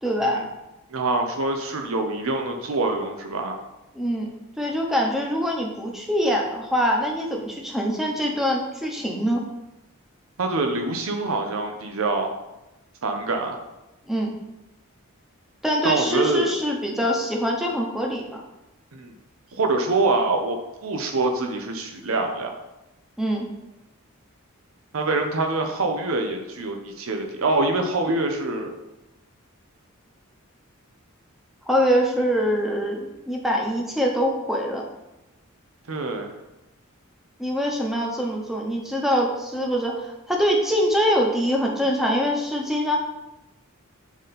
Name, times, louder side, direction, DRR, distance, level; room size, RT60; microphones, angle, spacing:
voice 1, 0.0-0.4 3.9-4.3 4.6-9.4 14.1-14.3 15.6-18.4 23.2-23.5 31.7-34.8 37.4-43.0, equal, ahead, 0 dB, 0.8 m, -24 dB
voice 2, 0.9-3.6 10.4-12.3 13.0-13.6 15.8-16.5 18.9-19.1 19.5-20.6 20.8-22.5 24.9-28.7 35.9-36.3, right 3 dB, 75° right, 4 dB, 0.7 m, -25 dB
7.2 x 3.9 x 4.2 m, 0.97 s
head